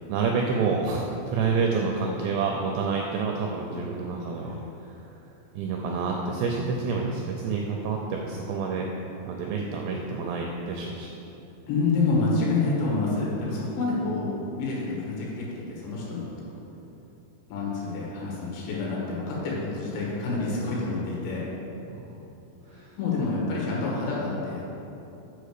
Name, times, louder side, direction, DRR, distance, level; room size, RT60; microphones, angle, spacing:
voice 1, 0.1-5.0 5.6-8.9 9.3-11.1 21.9-22.1 22.7-22.9, right 4 dB, 85° right, 0 dB, 2.4 m, -28 dB
voice 2, 11.7-14.3 14.6-16.5 17.5-21.5 22.7-24.6, left 3 dB, 70° left, -5 dB, 3.8 m, -28 dB
7.6 x 5.1 x 6.6 m, 2.9 s
omnidirectional pair, 5.5 m